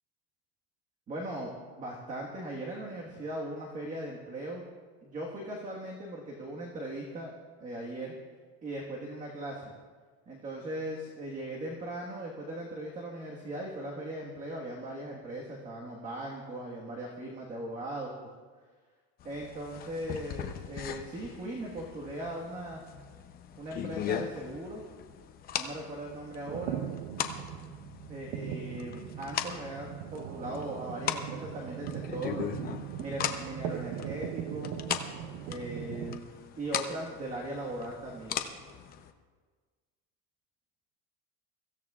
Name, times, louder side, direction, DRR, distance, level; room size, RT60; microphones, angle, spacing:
voice 1, 1.1-4.6 5.0-7.3 7.6-8.1 8.6-9.7 10.3-18.1 19.2-22.8 23.6-24.8 25.6-26.8 28.1-32.5 33.0-34.8 35.5-38.4, right 1 dB, 25° right, -2 dB, 1.5 m, -39 dB
sound 1, 19.2-39.1, left 8 dB, 25° left, 0.7 m, -39 dB
sound 2, 26.5-36.2, right 10 dB, 65° right, 0.7 m, -39 dB
23.5 x 15.5 x 2.4 m, 1.5 s
cardioid pair, 165°, 33 cm